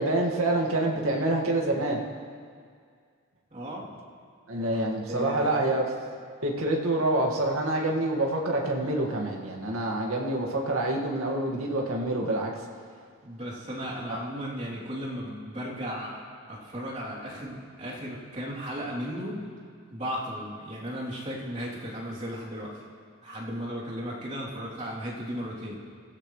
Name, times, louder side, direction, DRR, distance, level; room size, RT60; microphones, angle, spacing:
voice 1, 0.0-2.0 4.5-5.9 6.4-12.5, right 1 dB, 80° right, -1 dB, 2.2 m, -27 dB
voice 2, 3.5-3.9 4.6-4.7 5.1-5.7 13.2-16.1 16.5-19.4 19.9-22.8 23.2-25.8, equal, 30° right, -7 dB, 3.5 m, -35 dB
25.5 x 16.5 x 3.4 m, 2.1 s
head